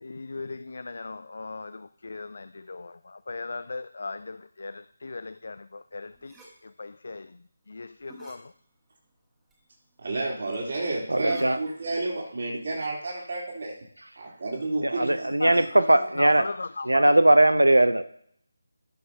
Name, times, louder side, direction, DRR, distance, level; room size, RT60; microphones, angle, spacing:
voice 1, 0.0-6.3 6.6-8.5 15.4-17.1, left 3 dB, 60° left, 14 dB, 0.3 m, -38 dB
sound 1, 6.1-6.6 7.9-8.4 9.0-9.1 9.5-9.6 9.9-10.0 10.5-10.7 11.1-11.8, right 2 dB, 10° right, 1.6 m, -46 dB
voice 2, 10.0-13.7 14.2-15.6, right 2 dB, 55° right, -2 dB, 3.1 m, -31 dB
voice 3, 11.1-11.6 14.8-16.5 16.9-18.0, right 1 dB, 85° right, 14 dB, 0.6 m, -19 dB
17.5 x 6.1 x 2.7 m, 0.67 s
figure-of-eight pair, 160°, 0 cm